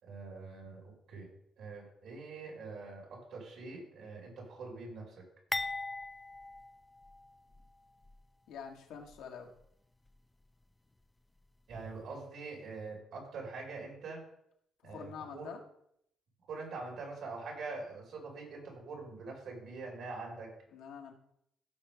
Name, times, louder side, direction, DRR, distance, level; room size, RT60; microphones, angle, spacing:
voice 1, 0.0-1.3 1.6-5.1 11.7-14.2 14.8-15.5 16.5-20.5, right 3 dB, 75° right, -1 dB, 4.5 m, -44 dB
sound 1, 5.5-7.7 8.0-8.2 9.1-9.2, left 2 dB, 15° left, 0.5 m, -40 dB
voice 2, 8.5-9.5 14.8-15.6 20.7-21.1, left 7 dB, 90° left, 2 dB, 1.6 m, -46 dB
16.0 x 5.5 x 3.5 m, 0.72 s
cardioid pair, 90°, 0 cm